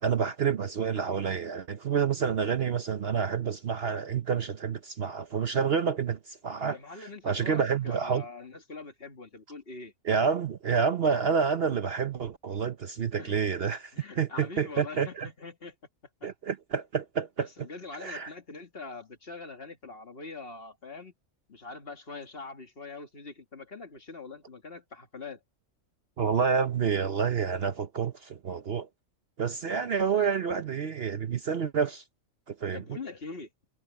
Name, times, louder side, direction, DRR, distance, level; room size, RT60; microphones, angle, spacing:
voice 1, 0.0-8.2 10.0-15.3 16.2-17.5 18.0-18.3 26.2-28.9 29.4-32.0 32.5-33.0, right 6 dB, 50° right, 0.9 m, -28 dB
voice 2, 6.7-9.9 13.2-13.5 13.9-15.8 16.2-16.3 17.6-21.1 21.5-25.4 32.7-33.5, left 3 dB, 45° left, 2.2 m, -43 dB
omnidirectional pair, 1.4 m